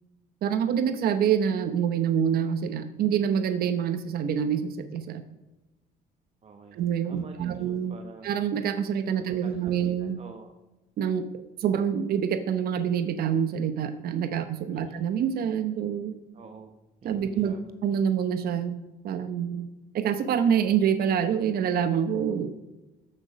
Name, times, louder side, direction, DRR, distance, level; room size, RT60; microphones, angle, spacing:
voice 1, 0.4-5.2 6.7-8.0 8.2-10.2 11.0-11.2 11.6-16.1 17.0-17.5 17.8-18.7 19.0-19.7 19.9-22.5, right 8 dB, 65° right, 10 dB, 0.9 m, -26 dB
voice 2, 6.4-6.8 7.1-8.3 9.4-10.5 14.7-14.9 16.3-16.7 17.0-17.6, right 5 dB, 40° right, 4 dB, 1.1 m, -46 dB
14.5 x 6.5 x 5.1 m, 1.1 s
cardioid pair, 110°, 17 cm